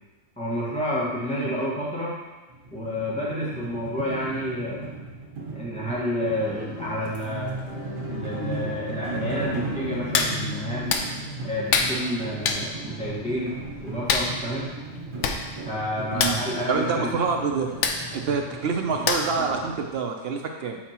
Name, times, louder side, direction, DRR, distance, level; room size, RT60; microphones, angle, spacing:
voice 1, 0.4-2.2 2.7-4.9 5.5-7.5 8.1-11.0 11.4-14.7 15.6-17.2, equal, 5° left, -8 dB, 1.5 m, -30 dB
sound 1, 2.5-19.7, right 3 dB, 85° right, 1.6 m, -37 dB
sound 2, 6.2-18.2, left 2 dB, 30° left, 1.6 m, -39 dB
Hands, 10.1-10.3 10.9-11.1 11.7-11.9 12.4-12.6 14.1-14.3 15.0-15.1 15.2-15.4 15.7-15.8 16.1-16.4 17.8-18.0 19.1-19.4 19.9-20.0, left 5 dB, 75° left, 0.9 m, -23 dB
voice 2, 16.7-17.7 18.1-20.8, right 5 dB, 60° right, 3 dB, 0.7 m, -27 dB
7.3 x 4.5 x 2.9 m, 1.3 s
omnidirectional pair, 1.3 m